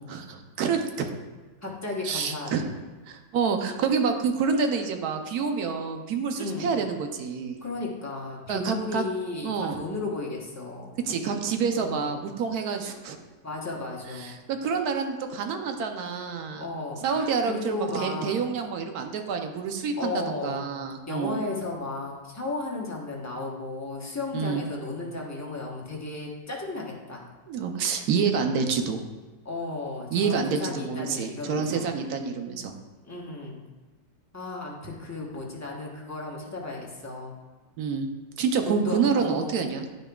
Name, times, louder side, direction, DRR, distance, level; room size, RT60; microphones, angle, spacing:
voice 1, 0.1-1.1 2.0-2.6 3.1-7.6 8.5-9.0 9.4-9.8 11.1-13.2 14.2-16.7 17.0-21.4 24.3-24.6 27.5-29.0 30.1-32.7 37.8-38.1 38.4-39.8, right 5 dB, 70° right, 5 dB, 1.0 m, -28 dB
voice 2, 1.6-2.7 6.4-6.7 7.6-11.0 11.7-12.1 13.4-14.3 16.6-18.3 20.0-20.6 21.1-27.3 29.4-31.9 33.0-33.6 34.3-37.4 38.7-39.6, left 2 dB, 15° left, -3 dB, 0.6 m, -34 dB
9.8 x 5.3 x 2.3 m, 1.3 s
omnidirectional pair, 1.9 m